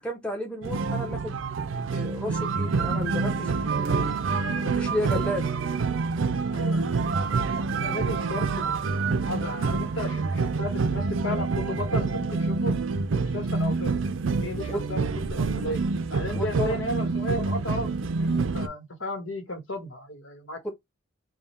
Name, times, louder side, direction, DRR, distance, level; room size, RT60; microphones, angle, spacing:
voice 1, 0.0-1.4 1.7-4.1 4.6-5.5 14.7-14.8 16.3-16.8 20.6-20.7, left 1 dB, 5° left, 1.0 m, -32 dB
sound 1, 0.6-18.7, right 4 dB, 80° right, 0.5 m, -27 dB
voice 2, 4.9-5.2 5.7-6.0 6.5-7.0 7.8-12.8 13.2-14.0 14.4-17.9 18.2-20.6, left 1 dB, 75° left, 1.2 m, -34 dB
3.6 x 2.3 x 4.2 m
head